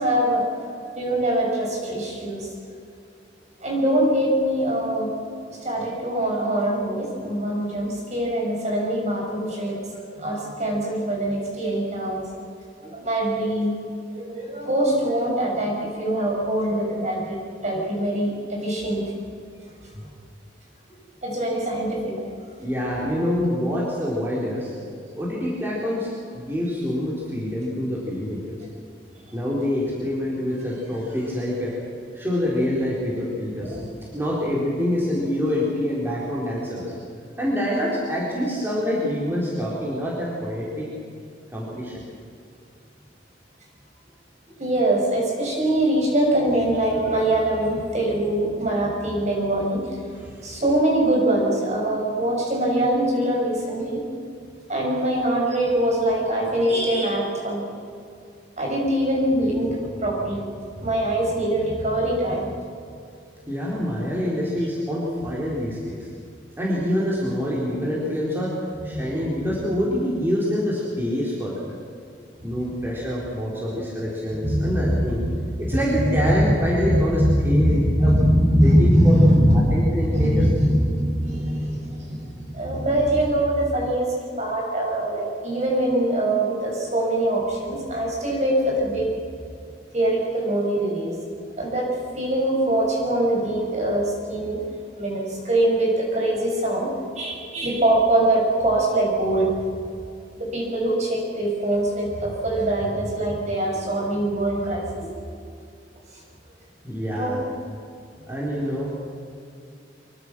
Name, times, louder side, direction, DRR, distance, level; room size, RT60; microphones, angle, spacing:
voice 1, 0.0-2.5 3.6-5.1 5.5-12.3 12.8-13.7 14.1-17.4 17.6-19.2 21.2-22.2 33.6-33.8 44.6-49.9 50.4-54.0 54.7-57.6 58.6-59.8 60.0-60.5 60.8-62.5 68.9-69.0 74.4-74.9 75.7-75.8 76.4-76.5 76.8-84.1 84.4-89.1 89.9-91.2 91.6-91.9 92.2-94.6 95.0-99.5 100.4-105.1 107.1-107.4, right 1 dB, 40° right, -2 dB, 7.0 m, -23 dB
voice 2, 22.6-24.7 25.2-26.1 26.3-28.4 29.3-31.8 32.1-36.9 37.4-40.9 41.5-42.0 49.2-49.4 50.0-50.8 51.8-52.0 63.5-66.1 66.6-68.6 68.8-71.6 72.4-75.2 75.6-79.2 79.5-80.5 106.8-107.4 108.3-108.9, equal, 10° right, -6 dB, 4.2 m, -26 dB
25.0 x 23.0 x 6.2 m, 2.4 s
head